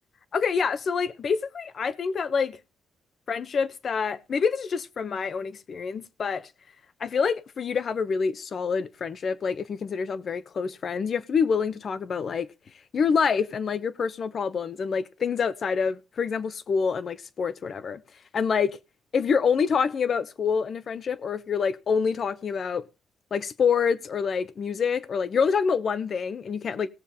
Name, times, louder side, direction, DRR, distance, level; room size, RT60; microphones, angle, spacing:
voice 1, 0.3-2.6 3.3-6.5 7.0-12.5 12.9-18.0 18.3-18.8 19.1-22.8 23.3-26.9, left 6 dB, 50° left, 1.0 m, -26 dB
17.5 x 7.1 x 4.1 m
cardioid pair, 90°, 0 cm